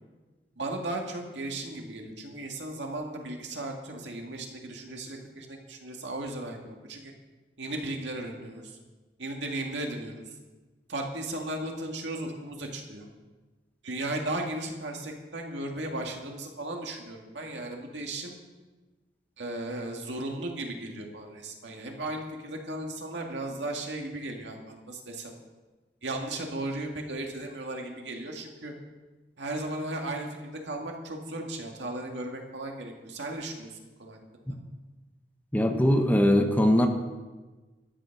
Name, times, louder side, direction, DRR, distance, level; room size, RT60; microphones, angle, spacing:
voice 1, 0.6-7.1 7.6-8.8 9.2-10.2 10.9-13.1 13.8-18.3 19.4-25.3 26.0-28.7 29.4-30.3 30.6-34.2, right 1 dB, 85° right, 1 dB, 2.1 m, -36 dB
voice 2, 35.5-36.9, left 1 dB, 10° left, 5 dB, 1.0 m, -21 dB
12.5 x 9.5 x 6.0 m, 1.2 s
head